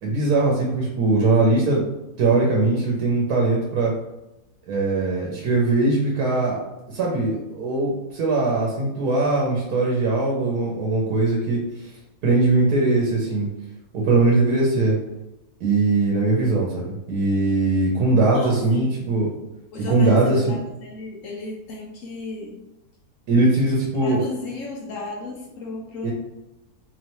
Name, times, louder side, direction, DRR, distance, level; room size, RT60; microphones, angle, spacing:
voice 1, 0.0-1.8 2.2-3.9 4.7-6.6 6.9-11.9 12.2-13.5 13.9-15.0 15.6-19.3 19.9-20.6 23.3-24.2 26.0-26.1, right 2 dB, 75° right, -2 dB, 1.3 m, -20 dB
voice 2, 18.3-19.1 19.7-22.6 24.0-26.1, left 3 dB, 60° left, -1 dB, 1.1 m, -34 dB
3.9 x 3.1 x 3.0 m, 0.95 s
omnidirectional pair, 1.7 m